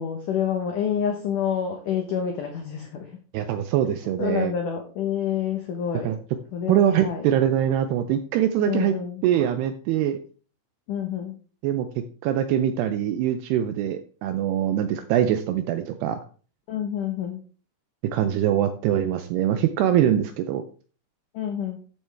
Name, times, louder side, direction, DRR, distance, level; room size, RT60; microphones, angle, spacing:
voice 1, 0.0-3.2 4.2-6.2 6.5-7.3 8.6-9.2 10.9-11.3 16.7-17.4 21.3-21.8, left 8 dB, 80° left, 4 dB, 1.8 m, -28 dB
voice 2, 3.3-4.5 6.0-6.2 6.7-8.9 9.2-10.2 11.6-11.9 12.2-16.2 18.0-20.6, right 10 dB, 80° right, 9 dB, 2.4 m, -23 dB
13.5 x 7.6 x 3.5 m, 0.40 s
omnidirectional pair, 5.3 m